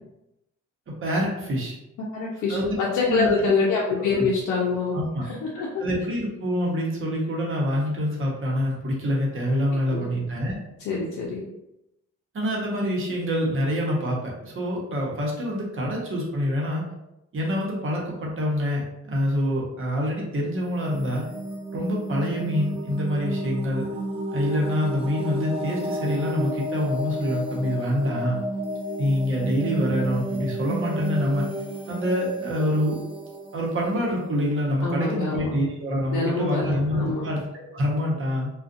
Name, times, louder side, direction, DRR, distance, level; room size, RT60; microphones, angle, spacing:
voice 1, 0.9-1.8 2.5-2.8 3.0-3.5 4.9-5.2 5.8-10.6 12.3-16.8 17.3-21.3 21.7-23.9 24.3-28.4 29.0-31.4 31.9-33.0 33.5-38.5, equal, 45° right, -3 dB, 0.9 m, -26 dB
voice 2, 2.0-5.0 5.2-5.8 9.9-10.1 10.8-11.5 34.8-35.5 36.1-37.3, left 4 dB, 75° left, -4 dB, 0.6 m, -25 dB
sound 1, 20.6-35.3, right 1 dB, 20° right, 0.5 m, -32 dB
2.4 x 2.3 x 2.5 m, 0.89 s
cardioid pair, 90°, 30 cm